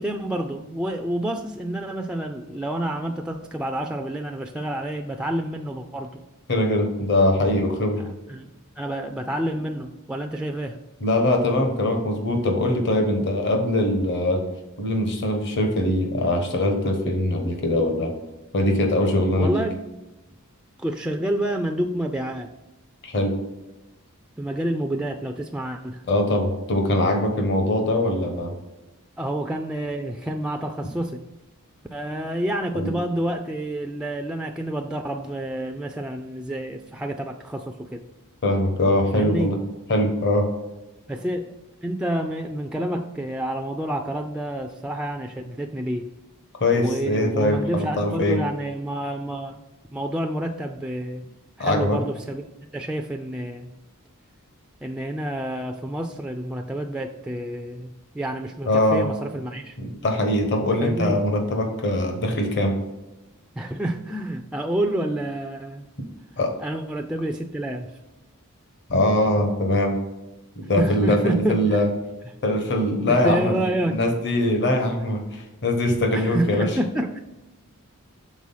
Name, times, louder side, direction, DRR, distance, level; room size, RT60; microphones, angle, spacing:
voice 1, 0.0-6.2 8.0-8.5 8.8-10.8 19.4-19.7 20.8-22.5 24.4-26.0 29.2-31.2 31.9-38.1 39.1-39.5 41.1-41.6 41.8-46.1 46.7-49.6 49.9-51.2 51.6-52.4 52.7-53.7 54.8-59.8 60.8-61.2 63.6-65.9 66.6-67.9 70.7-71.8 73.1-74.0 76.1-77.2, right 1 dB, 5° right, 4 dB, 0.3 m, -28 dB
voice 2, 6.5-8.1 11.0-14.4 14.8-18.1 18.5-19.6 23.0-23.3 26.1-28.5 32.7-32.9 38.4-39.6 39.9-40.5 46.6-48.4 51.6-52.0 58.7-59.1 59.8-62.7 66.4-66.5 68.9-70.0 70.6-71.9 72.4-76.7, left 1 dB, 55° left, 4 dB, 1.1 m, -22 dB
6.2 x 4.0 x 5.5 m, 1.0 s
head